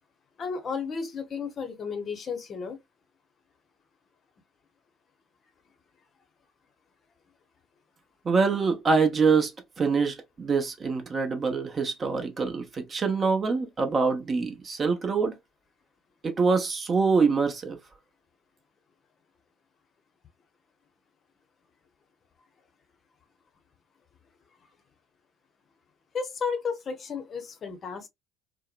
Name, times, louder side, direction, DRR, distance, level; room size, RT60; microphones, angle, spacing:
voice 1, 0.4-2.8 26.1-28.1, left 5 dB, 40° left, 0.7 m, -33 dB
voice 2, 8.2-9.5 9.8-15.3 16.2-17.8, right 4 dB, 35° right, 0.7 m, -25 dB
2.7 x 2.1 x 2.3 m
hypercardioid pair, 60°, 0 cm